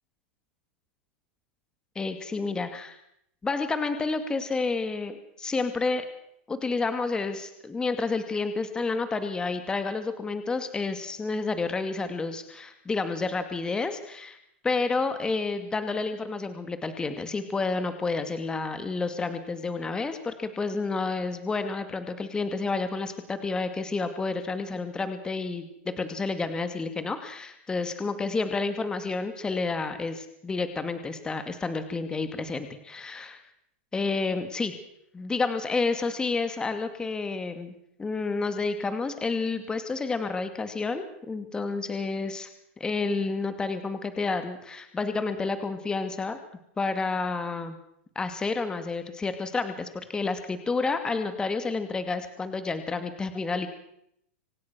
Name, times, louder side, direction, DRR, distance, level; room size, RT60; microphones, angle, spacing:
voice 1, 2.0-3.0 3.4-6.1 6.5-14.4 14.6-33.4 33.9-34.7 35.1-42.5 42.8-46.4 46.8-47.8 48.2-53.7, left 4 dB, 10° left, 9 dB, 2.3 m, -30 dB
26.0 x 17.5 x 6.2 m, 0.73 s
supercardioid pair, 140°, 7 cm